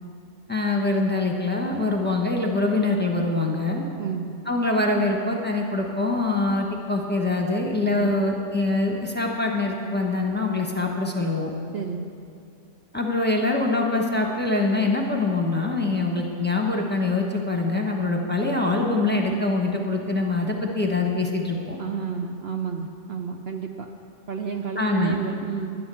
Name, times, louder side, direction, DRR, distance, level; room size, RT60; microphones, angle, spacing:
voice 1, 0.5-3.9 4.5-11.5 12.9-21.8 24.8-25.2, left 2 dB, 10° left, 0 dB, 0.9 m, -24 dB
voice 2, 11.7-12.1 16.0-16.1 21.8-23.9 24.3-25.8, right 6 dB, 85° right, 3 dB, 0.5 m, -31 dB
10.5 x 10.5 x 7.0 m, 2.5 s
omnidirectional pair, 1.9 m